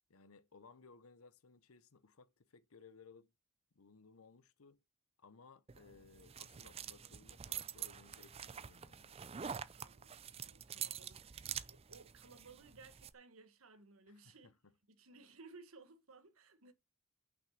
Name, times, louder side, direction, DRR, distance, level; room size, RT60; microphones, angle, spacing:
voice 1, 0.1-3.3 3.7-4.8 5.2-9.2 14.1-14.5, left 4 dB, 85° left, 0.9 m, -61 dB
sound 1, 5.7-13.1, right 8 dB, 25° right, 0.4 m, -47 dB
voice 2, 9.8-14.5 14.9-16.7, right 4 dB, 75° right, 1.4 m, -60 dB
6.3 x 6.0 x 6.4 m
head